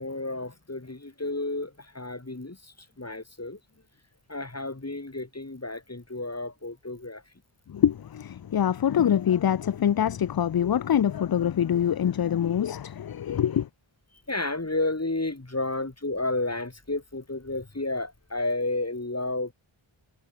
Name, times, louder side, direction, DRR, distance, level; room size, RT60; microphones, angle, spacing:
voice 1, 0.0-3.6 4.3-7.2 14.3-19.5, left 2 dB, 30° left, 3.5 m, -31 dB
voice 2, 7.7-13.7, left 9 dB, 50° left, 0.5 m, -24 dB
wide cardioid pair, 50°, 49 cm